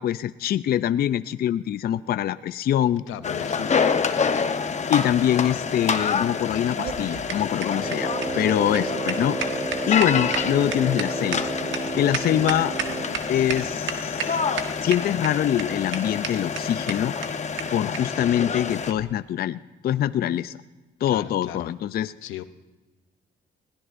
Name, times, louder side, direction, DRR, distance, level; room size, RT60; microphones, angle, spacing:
voice 1, 0.0-3.0 4.9-9.4 9.9-11.5 11.9-12.7 13.3-14.4 14.8-17.1 17.7-20.6 21.0-22.1, left 11 dB, 50° left, 14 dB, 0.4 m, -24 dB
voice 2, 3.1-4.0 8.2-8.7 21.1-21.6 22.2-22.4, left 13 dB, 85° left, 12 dB, 0.7 m, -37 dB
sound 1, 3.2-18.9, left 5 dB, 35° left, 0.9 m, -28 dB
sound 2, 6.5-13.2 13.5-13.6 13.9-14.3 14.6-15.3 15.6-15.7 15.9-16.0 16.2-16.3 16.6-16.7 16.9-17.0 17.2-17.3 17.6-17.7 17.9-18.0 18.9-19.0, right 7 dB, 70° right, 1.4 m, -31 dB
Brass instrument, 7.7-13.3, right 3 dB, 10° right, 1.5 m, -32 dB
20.5 x 16.5 x 2.5 m, 1.2 s
cardioid pair, 90°, 20 cm